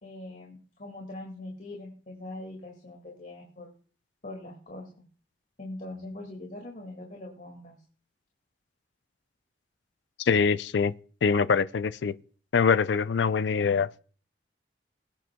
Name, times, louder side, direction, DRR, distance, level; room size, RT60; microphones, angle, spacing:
voice 1, 0.0-3.7 4.2-4.9 5.6-7.8, left 2 dB, 50° left, 2.1 m, -42 dB
voice 2, 10.2-10.9 11.2-12.1 12.5-14.0, left 5 dB, 80° left, 0.4 m, -24 dB
21.5 x 9.2 x 2.2 m
head